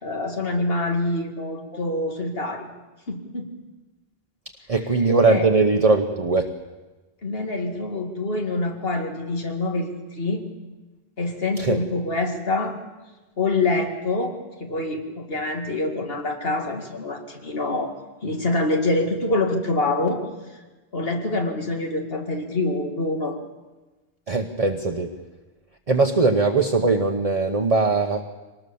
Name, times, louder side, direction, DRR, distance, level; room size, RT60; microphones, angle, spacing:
voice 1, 0.0-2.7 3.1-3.5 5.3-5.5 7.2-10.4 11.2-12.7 13.4-14.3 14.6-17.9 18.2-20.2 20.9-23.4, left 2 dB, 60° left, 3 dB, 2.6 m, -25 dB
voice 2, 4.7-6.5 11.6-11.8 24.3-25.1 25.9-28.2, right 3 dB, 35° right, 4 dB, 1.1 m, -20 dB
24.0 x 19.0 x 7.1 m, 1.2 s
omnidirectional pair, 1.1 m